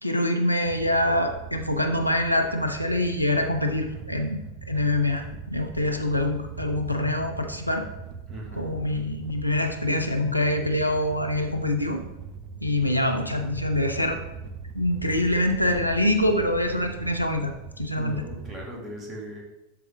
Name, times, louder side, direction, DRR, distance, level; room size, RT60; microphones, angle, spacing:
voice 1, 0.0-4.4 4.7-7.9 8.5-12.0 12.6-14.2 14.7-17.5 17.8-18.2, left 1 dB, 90° left, 4 dB, 0.8 m, -25 dB
sound 1, 0.6-18.7, right 5 dB, 40° right, 0.7 m, -40 dB
voice 2, 8.3-8.8 17.9-19.4, equal, 15° right, -2 dB, 2.3 m, -39 dB
12.0 x 4.9 x 3.5 m, 0.96 s
figure-of-eight pair, 90°, 0 cm